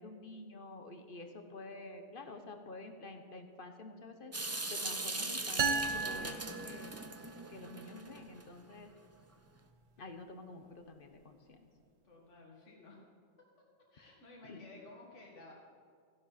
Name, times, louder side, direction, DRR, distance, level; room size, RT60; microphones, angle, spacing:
voice 1, 0.0-4.3 4.7-6.9 7.5-8.9 10.0-11.7 14.4-14.7, left 2 dB, 50° left, 6 dB, 1.1 m, -49 dB
voice 2, 2.2-2.5 10.7-11.1 12.0-13.1 13.9-15.5, left 2 dB, 80° left, -3 dB, 2.3 m, -55 dB
Water tap faucet / Sink (filling or washing) / Drip, 4.3-8.4, right 2 dB, 15° right, 0.5 m, -40 dB
sound 1, 5.6-7.4, right 4 dB, 50° right, 0.7 m, -35 dB
15.0 x 11.0 x 4.1 m, 2.2 s
omnidirectional pair, 1.2 m